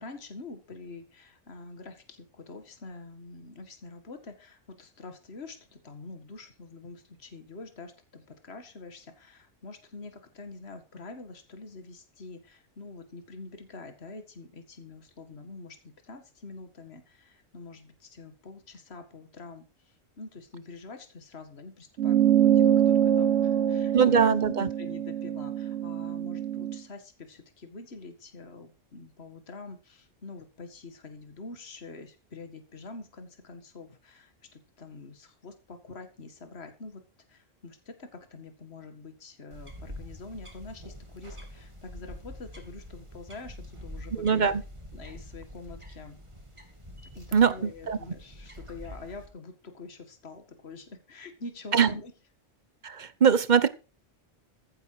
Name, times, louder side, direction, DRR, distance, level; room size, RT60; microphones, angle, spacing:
voice 1, 0.0-24.2 24.8-37.0 37.3-44.4 44.9-46.2 47.0-52.1, left 3 dB, 55° left, 8 dB, 2.2 m, -46 dB
sound 1, 22.0-26.8, right 10 dB, 70° right, 1.1 m, -24 dB
voice 2, 23.9-24.7 44.1-44.6 47.3-48.0 51.7-51.9 52.8-53.7, right 7 dB, 40° right, 16 dB, 1.0 m, -22 dB
sound 2, 39.5-49.3, equal, 25° right, 2.6 m, -45 dB
15.0 x 9.8 x 4.8 m, 0.33 s
omnidirectional pair, 1.3 m